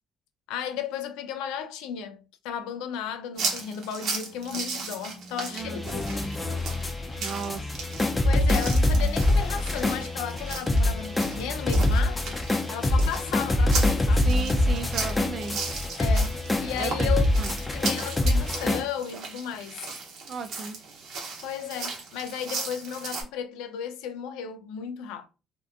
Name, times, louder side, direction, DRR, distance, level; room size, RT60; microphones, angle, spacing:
voice 1, 0.5-6.0 8.2-12.4 12.7-14.3 16.0-17.2 17.7-19.8 21.4-25.3, left 8 dB, 85° left, 0.3 m, -34 dB
sound 1, 3.4-23.2, right 4 dB, 70° right, 0.9 m, -37 dB
voice 2, 5.5-5.8 7.2-7.7 14.2-15.7 16.8-17.1 17.4-17.6 20.3-20.8, right 5 dB, 50° right, 0.5 m, -34 dB
sound 2, 5.6-18.8, left 1 dB, 20° left, 0.6 m, -25 dB
2.6 x 2.2 x 2.5 m
supercardioid pair, 75°, 0 cm